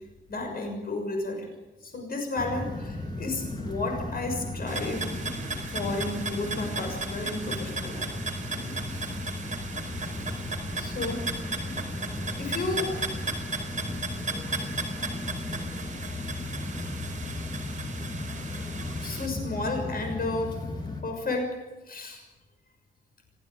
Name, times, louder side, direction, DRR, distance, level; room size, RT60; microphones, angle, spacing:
voice 1, 0.3-1.5 1.8-5.1 5.5-8.1 8.9-9.2 10.7-11.2 12.4-12.9 14.5-14.7 19.0-20.6 21.0-21.5 21.9-22.2, left 2 dB, 50° left, 4 dB, 6.4 m, -32 dB
sound 1, 2.4-21.0, left 2 dB, 20° left, 4.4 m, -35 dB
sound 2, 4.7-19.3, right 4 dB, 40° right, 5.1 m, -36 dB
28.0 x 17.0 x 9.0 m, 1.1 s
wide cardioid pair, 145°, 20 cm